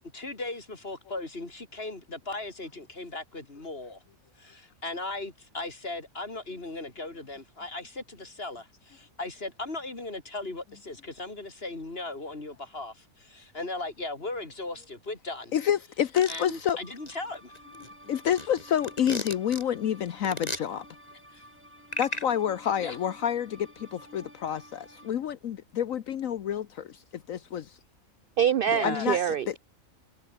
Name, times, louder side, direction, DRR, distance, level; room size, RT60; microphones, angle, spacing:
voice 1, 0.0-4.0 4.4-15.5 16.3-17.5 21.3-21.4 22.8-23.0 28.7-29.3, left 2 dB, 45° left, 3.9 m, -37 dB
voice 2, 15.5-16.8 18.1-20.8 22.0-27.8 28.8-29.5, left 9 dB, 70° left, 1.3 m, -28 dB
sound 1, 16.1-16.7 17.1-17.2 17.5-19.6 20.2-20.6 21.9-22.2, left 1 dB, 25° left, 4.0 m, -34 dB
sound 2, 16.8-25.1, equal, 10° right, 5.0 m, -52 dB
voice 3, 28.4-29.6, right 9 dB, 70° right, 0.5 m, -25 dB
omnidirectional pair, 1.5 m